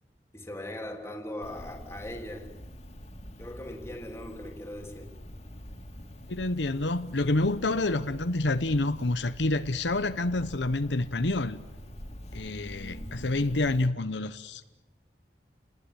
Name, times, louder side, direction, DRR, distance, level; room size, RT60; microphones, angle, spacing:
voice 1, 0.3-2.5 3.4-5.1, left 1 dB, 15° left, 3.6 m, -39 dB
Cricket, 1.4-13.9, equal, 35° left, 2.9 m, -45 dB
voice 2, 6.3-11.6 12.3-14.6, left 2 dB, 80° left, 1.1 m, -28 dB
30.0 x 19.0 x 10.0 m
head